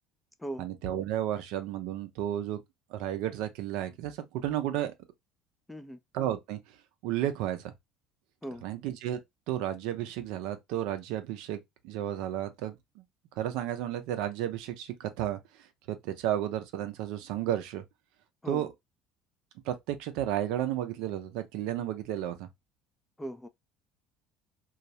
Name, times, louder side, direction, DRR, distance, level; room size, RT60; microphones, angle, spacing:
voice 1, 0.6-2.6 2.9-4.9 6.1-6.6 7.0-7.7 8.6-9.2 9.5-13.0 13.4-17.8 18.4-18.7 19.7-22.5, right 12 dB, 75° right, 0.4 m, -33 dB
voice 2, 5.7-6.0 8.4-8.7 18.4-18.6 23.2-23.5, right 1 dB, 10° left, 0.3 m, -38 dB
2.3 x 2.0 x 2.7 m
supercardioid pair, 95°, 0 cm